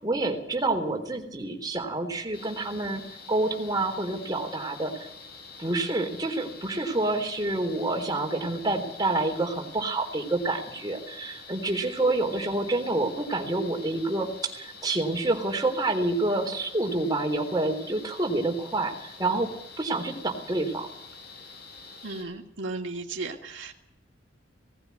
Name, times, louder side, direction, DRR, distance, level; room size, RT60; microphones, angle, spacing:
voice 1, 0.0-3.0 3.3-5.1 5.6-19.5 19.8-20.9, right 2 dB, 20° right, 2 dB, 3.7 m, -28 dB
sound 1, 2.3-22.2, left 4 dB, 60° left, 6.8 m, -46 dB
voice 2, 22.0-23.7, right 3 dB, 85° right, 1 dB, 2.6 m, -35 dB
18.5 x 16.0 x 9.5 m, 0.78 s
head